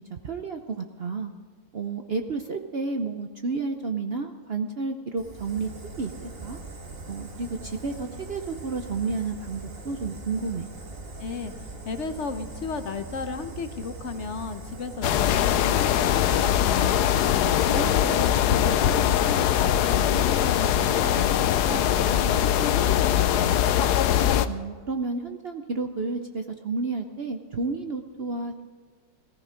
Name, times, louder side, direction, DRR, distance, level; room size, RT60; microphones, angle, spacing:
voice 1, 0.1-1.3 1.7-5.7 6.0-6.6 7.1-10.7 17.8-18.0 24.5-28.6, right 4 dB, 55° right, 6 dB, 0.7 m, -31 dB
Fire, 5.2-22.2, right 2 dB, 35° right, 1.7 m, -41 dB
voice 2, 11.2-17.2 17.7-23.7, left 5 dB, 50° left, 9 dB, 0.9 m, -34 dB
sound 1, 15.0-24.5, left 10 dB, 75° left, 1.1 m, -22 dB
17.0 x 14.5 x 5.1 m, 1.5 s
omnidirectional pair, 1.9 m